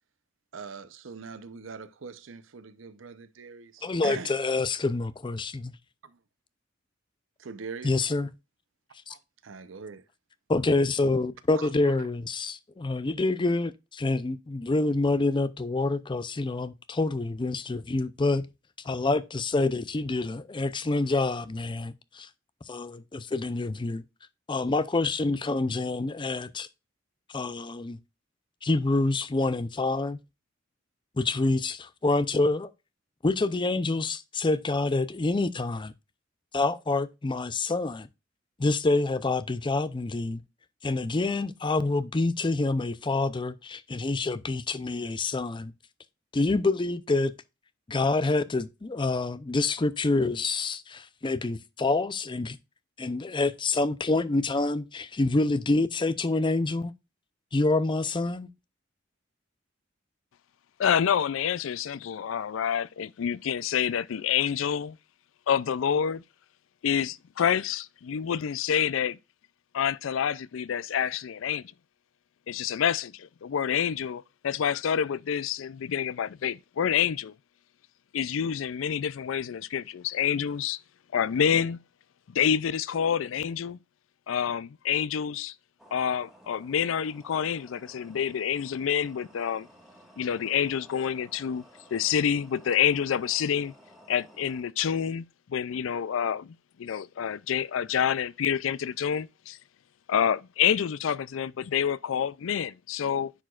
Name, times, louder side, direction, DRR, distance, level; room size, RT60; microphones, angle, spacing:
voice 1, 0.5-4.4 6.0-6.2 7.4-8.1 9.1-10.0 11.5-11.9, right 5 dB, 75° right, 0.7 m, -42 dB
voice 2, 3.8-5.7 7.8-8.3 9.1-9.2 10.5-18.5 18.8-22.3 22.7-24.0 24.5-26.7 27.3-28.0 28.6-30.2 31.2-32.7 33.2-35.9 36.5-38.1 38.6-40.4 40.8-45.7 46.3-47.3 47.9-52.6 53.0-56.9 57.5-58.5, left 3 dB, 25° left, 0.5 m, -27 dB
voice 3, 60.8-65.0 65.5-66.2 66.8-69.2 69.7-71.6 72.5-77.3 78.1-80.8 81.1-81.8 82.3-83.8 84.3-85.5 85.9-89.7 90.2-91.6 91.9-93.7 94.1-95.2 95.5-99.6 100.1-103.3, left 8 dB, 80° left, 0.4 m, -27 dB
sound 1, 85.8-94.6, equal, ahead, 1.5 m, -55 dB
10.0 x 4.8 x 2.4 m
head